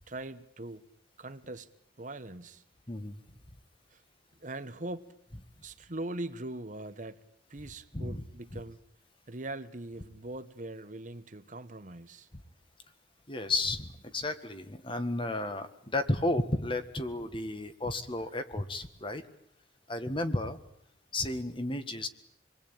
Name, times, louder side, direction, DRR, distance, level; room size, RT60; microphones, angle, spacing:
voice 1, 0.1-0.9 1.2-1.7 2.0-2.6 3.9-4.0 4.4-5.1 5.6-7.2 7.5-8.8 9.3-12.3, right 2 dB, 40° right, 11 dB, 1.2 m, -41 dB
voice 2, 2.9-3.2 7.9-8.2 8.5-8.6 13.3-19.2 19.9-20.6 21.1-22.1, left 2 dB, 25° left, 9 dB, 1.6 m, -33 dB
27.0 x 21.5 x 9.0 m, 0.72 s
head